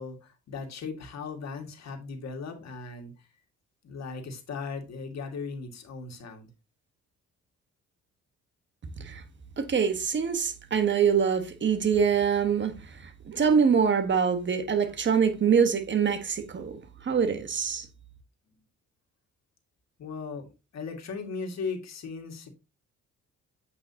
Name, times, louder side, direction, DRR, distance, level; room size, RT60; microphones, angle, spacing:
voice 1, 0.0-3.3 3.8-6.5 18.5-18.6 20.0-22.5, left 4 dB, 60° left, 1.9 m, -38 dB
voice 2, 9.6-12.7 13.0-16.7 17.0-17.9, right 6 dB, 40° right, 1.3 m, -24 dB
8.3 x 5.3 x 2.8 m
cardioid pair, 90°, 30 cm